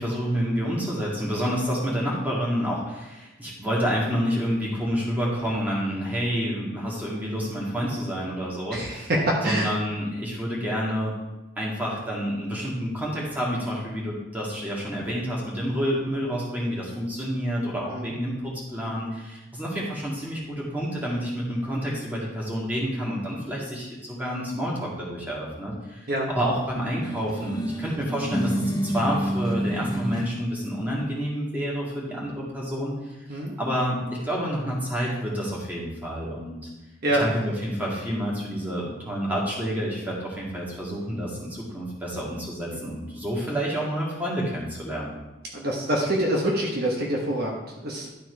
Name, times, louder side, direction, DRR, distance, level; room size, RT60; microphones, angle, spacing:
voice 1, 0.0-9.1 9.4-11.1 11.6-33.1 33.6-36.6 37.2-45.2, equal, 10° right, -5 dB, 2.1 m, -29 dB
voice 2, 9.2-9.7 17.9-18.1 26.1-26.3 33.3-33.5 37.0-37.3 42.7-42.8 45.5-48.1, right 1 dB, 50° right, -2 dB, 1.2 m, -26 dB
sound 1, 27.0-30.3, equal, 20° left, 0.7 m, -28 dB
11.5 x 4.5 x 4.7 m, 1.0 s
head